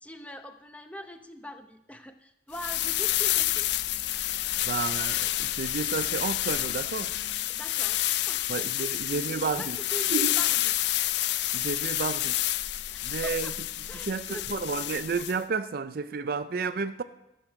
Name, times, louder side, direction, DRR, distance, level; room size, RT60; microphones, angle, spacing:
voice 1, 0.0-3.7 7.5-8.5 8.8-10.7 12.9-13.5 13.9-14.5 14.7-15.0, equal, 5° left, 7 dB, 0.7 m, -43 dB
sound 1, 2.5-15.4, left 14 dB, 60° left, 0.4 m, -29 dB
voice 2, 4.6-7.1 8.5-9.8 10.1-10.4 11.5-12.4 13.0-13.5 14.1-17.0, right 5 dB, 50° right, 13 dB, 0.4 m, -31 dB
13.0 x 6.5 x 7.5 m, 0.89 s
head